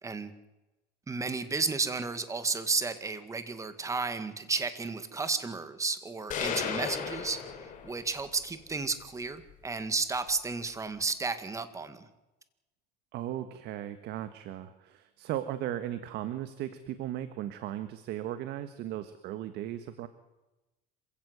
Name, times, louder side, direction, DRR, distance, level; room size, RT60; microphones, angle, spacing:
voice 1, 0.0-0.3 1.1-7.4 7.8-12.1, right 4 dB, 15° right, 11 dB, 1.9 m, -32 dB
sound 1, 6.3-8.3, left 7 dB, 45° left, 4.5 m, -35 dB
voice 2, 13.1-20.1, right 12 dB, 60° right, 11 dB, 1.5 m, -37 dB
27.0 x 16.0 x 8.2 m, 1.0 s
cardioid pair, 140°, 19 cm